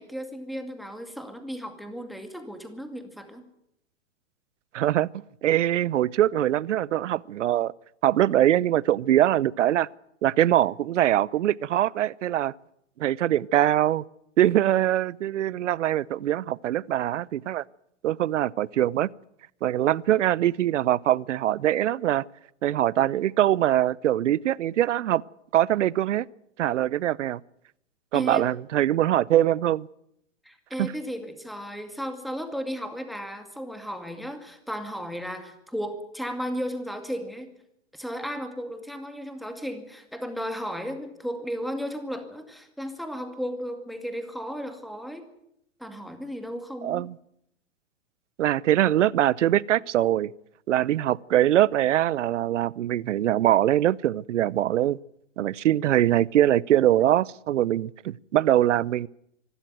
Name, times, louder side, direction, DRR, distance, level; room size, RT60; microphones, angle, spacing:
voice 1, 0.0-3.4 28.1-28.4 30.4-37.5 37.9-45.3 45.8-47.1, equal, ahead, 2.2 m, -35 dB
voice 2, 4.7-5.1 5.4-7.7 8.0-9.9 10.2-12.5 13.0-14.0 14.4-17.6 18.0-19.1 19.6-22.2 22.6-25.2 25.5-26.3 26.6-27.4 28.1-29.9 30.8-30.9 46.8-47.2 48.4-50.3 50.7-55.0 55.4-59.1, right 12 dB, 75° right, 0.7 m, -23 dB
25.0 x 12.5 x 9.2 m
hypercardioid pair, 135°, 37 cm